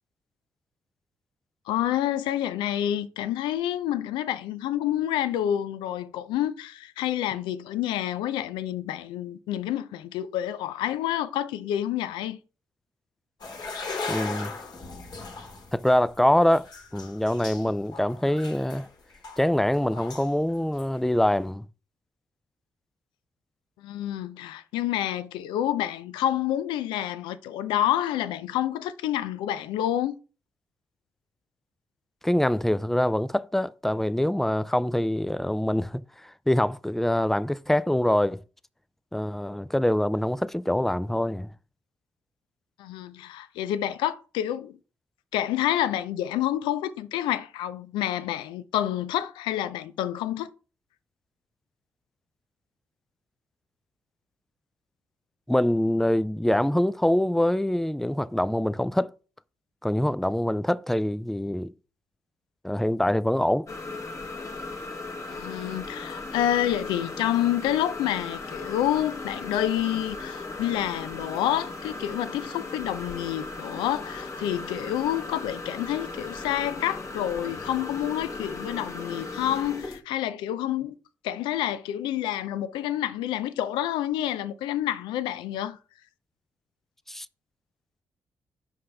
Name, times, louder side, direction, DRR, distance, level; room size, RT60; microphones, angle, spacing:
voice 1, 1.7-12.4 23.8-30.2 42.8-44.7 45.3-50.5 65.3-80.9 81.2-85.8, left 12 dB, 85° left, 0.4 m, -28 dB
sound 1, 13.4-20.4 20.8-21.0, left 3 dB, 60° left, 1.6 m, -38 dB
voice 2, 14.1-14.5 15.7-18.9 19.4-21.7 32.2-38.4 39.1-41.5 55.5-59.1 59.8-61.7 62.6-63.7 87.1-87.3, left 1 dB, 5° left, 0.3 m, -24 dB
sound 2, 63.7-80.0, left 3 dB, 40° left, 1.3 m, -37 dB
5.7 x 5.4 x 3.3 m
supercardioid pair, 50°, 8 cm